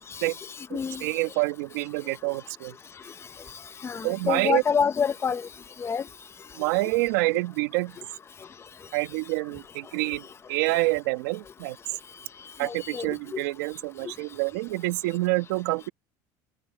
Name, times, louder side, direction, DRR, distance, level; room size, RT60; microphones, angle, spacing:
voice 1, 0.1-1.0 3.8-5.5 5.8-6.1 10.7-10.8 12.6-13.4, left 6 dB, 25° left, 1.0 m, -28 dB
voice 2, 1.0-2.7 4.0-4.6 6.6-8.0 8.9-11.8 12.6-15.9, right 22 dB, 85° right, 1.5 m, -27 dB
open air
supercardioid pair, 105°, 10 cm